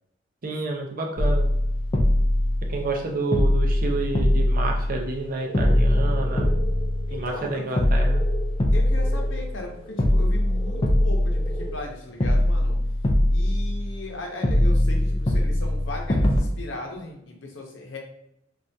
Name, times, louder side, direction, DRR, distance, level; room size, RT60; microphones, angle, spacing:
voice 1, 0.4-1.4 2.7-6.5 7.1-8.2, right 3 dB, 50° right, 1 dB, 0.6 m, -29 dB
sound 1, 1.2-3.0 3.3-5.2 5.5-7.4 7.8-9.7 10.0-11.9 12.2-14.1 14.4-16.4, left 1 dB, 30° left, 0.4 m, -22 dB
sound 2, 5.0-11.7, right 3 dB, 15° right, 1.4 m, -41 dB
voice 2, 7.1-7.8 8.7-12.8 13.3-18.0, left 2 dB, 80° left, 1 dB, 0.7 m, -37 dB
3.3 x 2.4 x 2.7 m, 0.79 s
head